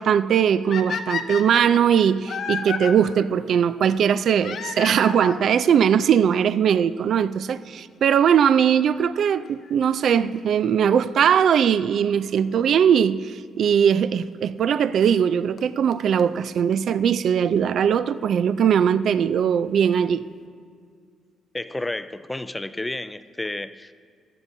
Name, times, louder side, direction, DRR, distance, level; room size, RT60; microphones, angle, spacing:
voice 1, 0.0-20.2, right 8 dB, 65° right, 0.3 m, -20 dB
sound 1, 0.7-2.9 4.4-5.4 6.4-6.5 7.2-7.3 7.5-7.6 9.4-9.7 12.5-12.6 13.7-13.8 15.2-15.3 15.6-15.7 15.9-16.0 16.2-16.3 16.5-16.6 16.7-16.8 17.0-17.1, left 6 dB, 60° left, 0.7 m, -31 dB
voice 2, 21.5-23.9, left 2 dB, 15° left, 0.4 m, -31 dB
15.0 x 11.0 x 2.7 m
cardioid pair, 90°, 0 cm